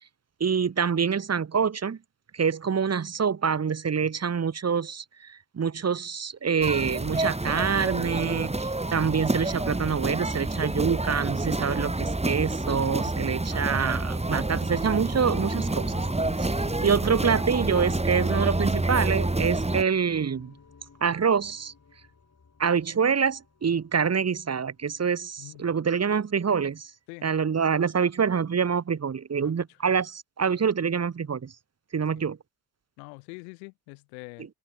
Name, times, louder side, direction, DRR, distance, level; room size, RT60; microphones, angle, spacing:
voice 1, 0.4-2.0 2.3-15.9 16.4-20.5 21.0-21.7 22.6-26.9 27.2-31.5 31.9-32.4, right 6 dB, 30° right, 1.4 m, -26 dB
sound 1, 6.6-19.8, right 2 dB, 10° right, 3.2 m, -28 dB
sound 2, 14.6-24.0 24.4-24.5, left 5 dB, 35° left, 7.0 m, -48 dB
voice 2, 33.0-34.5, left 36 dB, 80° left, 7.4 m, -44 dB
hypercardioid pair, 45°, 50 cm